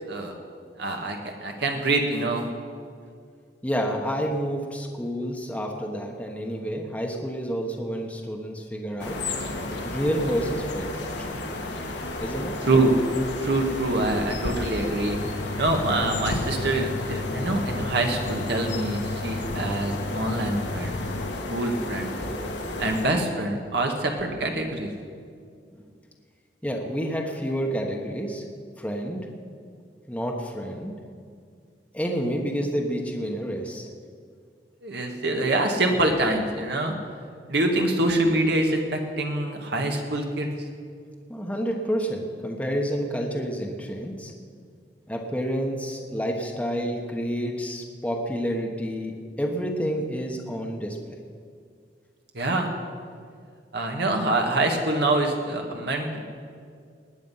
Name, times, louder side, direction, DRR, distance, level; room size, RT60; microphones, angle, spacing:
voice 1, 0.8-2.5 12.6-12.9 13.4-15.2 15.6-21.0 21.5-22.2 22.8-24.9 34.8-36.9 37.5-40.5 52.3-52.7 53.7-56.2, right 2 dB, 65° right, 2 dB, 1.7 m, -25 dB
voice 2, 3.6-9.2 9.8-11.1 12.2-12.6 25.8-25.9 26.6-28.4 28.8-29.3 30.1-30.9 31.9-33.9 41.3-44.3 45.1-51.1, equal, 10° left, 1 dB, 1.2 m, -29 dB
sound 1, 9.0-23.1, left 2 dB, 70° left, 1.7 m, -32 dB
sound 2, 15.1-21.3, left 3 dB, 45° left, 0.4 m, -34 dB
19.5 x 9.3 x 5.6 m, 2.2 s
head